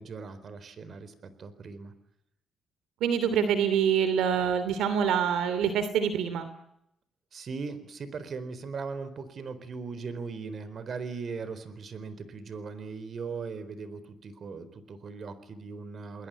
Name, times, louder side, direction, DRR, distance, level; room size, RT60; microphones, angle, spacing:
voice 1, 0.0-1.9 7.3-16.3, right 4 dB, 50° right, 14 dB, 4.2 m, -39 dB
voice 2, 3.0-6.5, right 8 dB, 85° right, 11 dB, 2.8 m, -25 dB
29.5 x 21.0 x 9.0 m, 0.80 s
cardioid pair, 90°, 0 cm